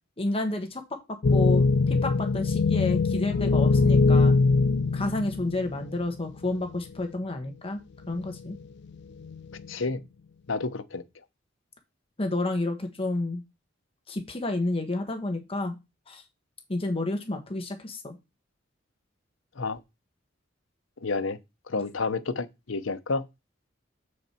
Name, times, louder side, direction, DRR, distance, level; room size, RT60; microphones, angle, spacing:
voice 1, 0.2-0.8 1.1-4.3 4.9-7.8 8.1-8.6 12.2-13.4 14.1-15.8 16.1-16.2 16.7-18.2, left 2 dB, 30° left, 1.3 m, -30 dB
sound 1, 1.2-6.0 6.7-6.8 8.0-8.6 9.2-9.7, left 4 dB, 60° left, 0.5 m, -22 dB
voice 2, 9.7-10.0 10.5-11.0 19.6-19.8 21.0-21.4 21.7-23.3, left 3 dB, 85° left, 0.8 m, -30 dB
7.2 x 6.6 x 4.4 m
head